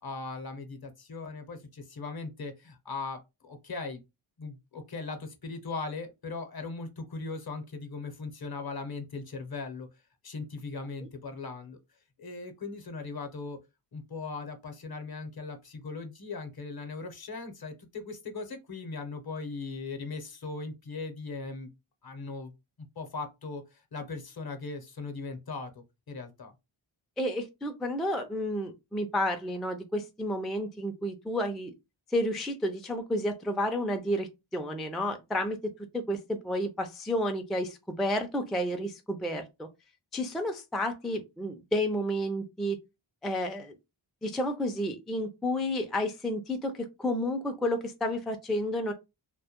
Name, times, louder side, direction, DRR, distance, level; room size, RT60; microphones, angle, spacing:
voice 1, 0.0-4.0 4.4-9.9 10.2-11.8 12.2-13.6 13.9-21.7 22.0-22.5 22.8-26.5, left 3 dB, 45° left, 0.7 m, -39 dB
voice 2, 27.2-31.7 32.1-35.6 35.9-39.7 40.1-42.8 43.2-43.7 44.2-48.9, left 1 dB, ahead, 0.3 m, -31 dB
2.2 x 2.1 x 2.8 m
cardioid pair, 50°, 50 cm